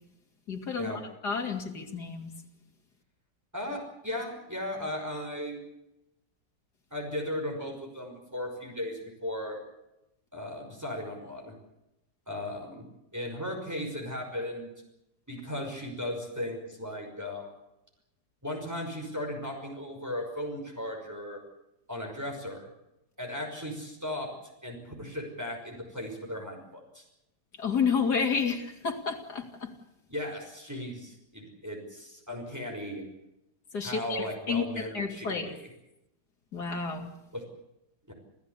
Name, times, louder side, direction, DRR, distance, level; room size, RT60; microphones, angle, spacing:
voice 1, 0.5-0.9 1.2-2.3 27.6-29.7 33.7-35.5 36.5-37.1, left 5 dB, 65° left, 4 dB, 3.3 m, -30 dB
voice 2, 3.5-5.6 6.9-9.6 10.3-11.5 12.3-12.9 13.1-14.7 15.3-17.5 18.4-21.4 21.9-22.7 23.2-27.0 30.1-33.1 33.8-35.7 37.3-37.5 38.1-38.2, left 1 dB, 10° right, 1 dB, 5.7 m, -36 dB
28.0 x 15.5 x 8.3 m, 0.87 s
omnidirectional pair, 1.9 m